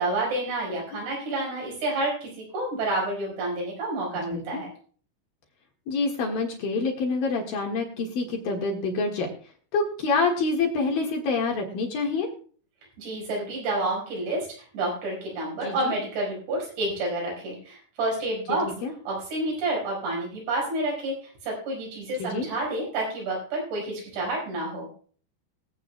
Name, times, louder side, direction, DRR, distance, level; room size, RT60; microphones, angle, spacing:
voice 1, 0.0-4.7 13.0-14.5 14.7-18.7 19.1-24.9, right 2 dB, 70° right, -2 dB, 7.0 m, -29 dB
voice 2, 4.3-4.6 5.9-9.3 9.7-12.3 15.6-15.9 18.8-18.9 22.2-22.5, left 3 dB, 60° left, 0 dB, 3.0 m, -27 dB
24.5 x 8.5 x 2.2 m, 0.44 s
omnidirectional pair, 5.3 m